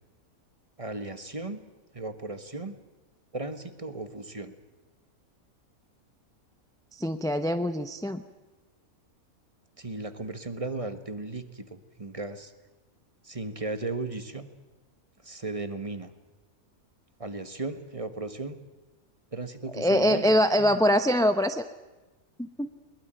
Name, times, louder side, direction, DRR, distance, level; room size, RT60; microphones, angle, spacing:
voice 1, 0.8-1.6 1.9-2.8 3.3-4.5 9.8-12.5 13.2-14.5 15.2-16.1 17.2-18.6 19.3-20.3 20.6-20.8, right 2 dB, 25° right, 10 dB, 1.4 m, -36 dB
voice 2, 7.0-8.2 19.7-21.6 22.6-22.8, equal, 5° left, 9 dB, 0.6 m, -23 dB
22.0 x 20.5 x 8.9 m, 1.1 s
omnidirectional pair, 1.5 m